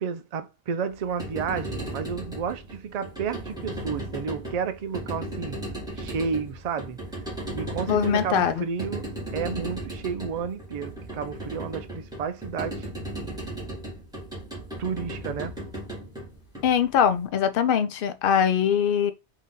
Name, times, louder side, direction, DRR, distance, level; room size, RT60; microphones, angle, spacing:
voice 1, 0.0-5.6 6.0-7.0 7.5-12.9 14.8-15.6, right 6 dB, 55° right, 0.5 m, -31 dB
sound 1, 1.0-17.1, right 1 dB, 5° right, 1.5 m, -36 dB
voice 2, 7.9-8.6 16.6-19.1, left 8 dB, 60° left, 0.6 m, -22 dB
3.8 x 2.8 x 3.7 m
omnidirectional pair, 1.2 m